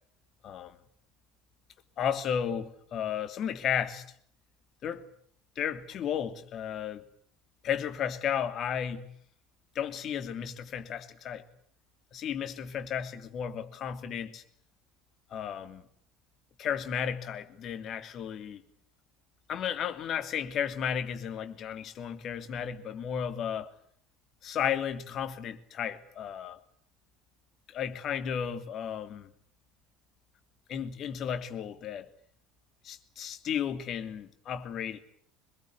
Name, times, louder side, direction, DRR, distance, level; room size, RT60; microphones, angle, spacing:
voice 1, 0.4-0.7 2.0-4.0 4.8-5.0 5.6-7.0 7.6-9.1 9.7-11.4 12.1-14.4 15.3-15.8 16.6-18.6 19.5-23.7 24.4-26.6 27.7-29.3 30.7-32.1 32.8-35.0, left 8 dB, 45° left, 3.0 m, -33 dB
25.0 x 22.0 x 9.6 m
figure-of-eight pair, 65°, 0 cm